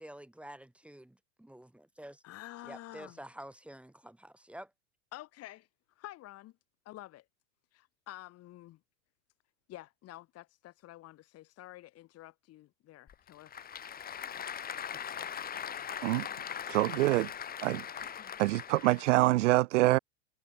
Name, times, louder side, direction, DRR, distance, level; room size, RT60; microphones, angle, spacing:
voice 1, 0.0-2.2 2.6-4.7, right 1 dB, 5° right, 2.3 m, -49 dB
voice 2, 2.2-3.2 5.1-5.7 6.0-6.5 6.9-7.3 7.7-8.8 9.7-13.6, left 16 dB, 40° left, 3.6 m, -49 dB
Applause / Crowd, 13.1-19.2, left 8 dB, 25° left, 2.2 m, -40 dB
voice 3, 16.7-17.3 17.6-17.8 18.4-20.0, right 19 dB, 80° right, 0.6 m, -25 dB
hypercardioid pair, 115°, 36 cm